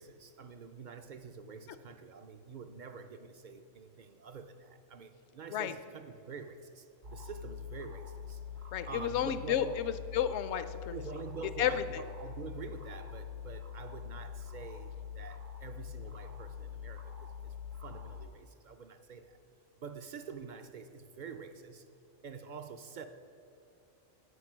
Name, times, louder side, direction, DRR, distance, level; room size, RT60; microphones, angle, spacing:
voice 1, 0.0-8.4 8.9-9.8 10.9-17.1 17.4-17.5 17.8-19.4 19.8-21.8 22.2-23.1, right 5 dB, 55° right, 9 dB, 0.5 m, -47 dB
sound 1, 7.0-18.3, left 7 dB, 80° right, 1.9 m, -44 dB
voice 2, 8.7-11.0 11.6-12.0, left 9 dB, 65° left, 13 dB, 0.8 m, -32 dB
9.7 x 8.3 x 6.1 m, 2.6 s
omnidirectional pair, 1.3 m